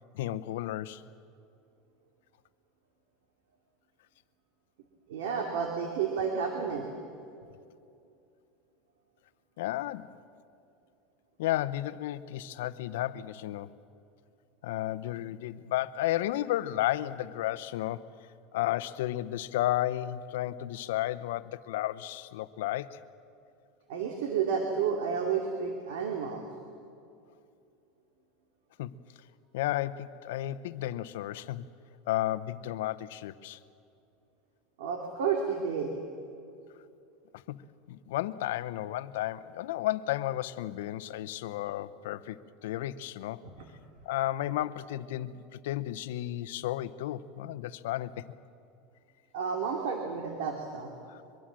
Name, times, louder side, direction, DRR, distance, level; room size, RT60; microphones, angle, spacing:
voice 1, 0.1-1.0 9.6-10.2 11.4-13.7 14.6-18.1 18.5-23.0 28.8-28.9 29.5-31.6 32.1-33.6 37.5-37.6 37.9-43.4 44.0-48.3 51.1-51.2, left 14 dB, 80° left, 14 dB, 0.8 m, -33 dB
voice 2, 5.1-6.9 23.9-26.4 34.8-35.9 43.4-43.5 49.3-50.9, right 6 dB, 80° right, 2 dB, 2.6 m, -31 dB
23.5 x 23.0 x 7.6 m, 2.6 s
supercardioid pair, 150°, 0 cm